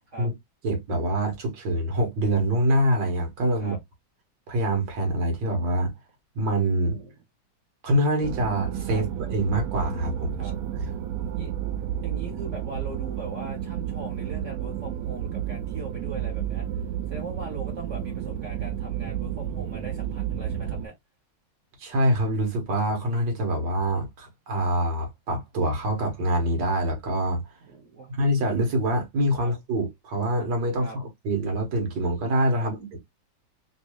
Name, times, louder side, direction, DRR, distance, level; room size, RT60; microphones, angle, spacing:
voice 1, 0.6-3.8 4.5-5.9 6.4-7.0 7.8-10.4 21.8-27.4 28.1-33.0, right 1 dB, 70° right, 2.0 m, -25 dB
sound 1, 8.2-20.9, right 10 dB, 85° right, 0.7 m, -31 dB
voice 2, 12.0-16.7 17.1-20.9 27.6-28.1 29.4-29.5 30.8-31.0 32.5-32.7, right 3 dB, 50° right, 1.1 m, -40 dB
3.9 x 2.4 x 3.0 m
omnidirectional pair, 2.1 m